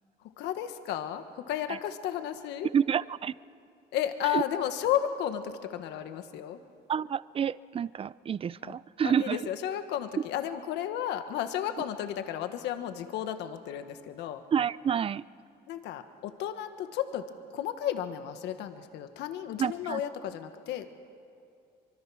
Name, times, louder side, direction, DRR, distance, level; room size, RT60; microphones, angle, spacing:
voice 1, 0.4-2.7 3.9-6.6 8.6-8.8 9.0-14.4 15.7-17.3 17.5-20.9, left 10 dB, 85° left, 9 dB, 1.3 m, -33 dB
voice 2, 2.7-3.3 4.3-4.4 6.9-9.4 14.5-15.2 19.6-20.0, right 8 dB, 35° right, 19 dB, 0.5 m, -29 dB
24.5 x 24.5 x 6.2 m, 2.4 s
cardioid pair, 110°, 17 cm